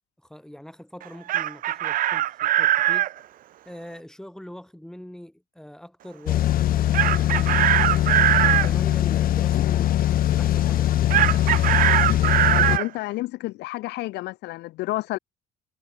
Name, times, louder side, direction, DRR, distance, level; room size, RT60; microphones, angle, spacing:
voice 1, 0.2-3.1 3.7-7.8 8.5-11.3, equal, 5° left, 5.5 m, -43 dB
Chicken rooster, 1.0-3.1 6.9-8.7 11.1-12.9, right 13 dB, 55° right, 0.6 m, -21 dB
sound 1, 6.3-12.8, left 12 dB, 60° left, 1.2 m, -21 dB
voice 2, 12.5-15.2, left 19 dB, 85° left, 1.2 m, -30 dB
cardioid pair, 110°, 17 cm